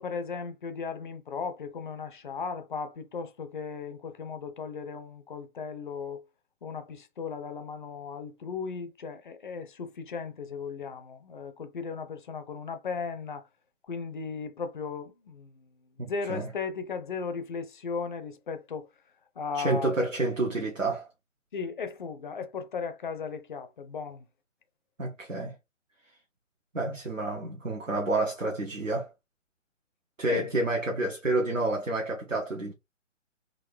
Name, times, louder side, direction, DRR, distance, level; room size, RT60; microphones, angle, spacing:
voice 1, 0.0-6.2 6.6-13.4 13.9-15.5 16.0-18.9 19.4-19.9 21.5-24.2 30.3-30.5, left 5 dB, 40° left, 0.6 m, -36 dB
voice 2, 19.5-21.1 25.0-25.5 26.7-29.1 30.2-32.7, right 2 dB, 90° right, 1.0 m, -29 dB
3.8 x 2.5 x 3.4 m
figure-of-eight pair, 130°, 37 cm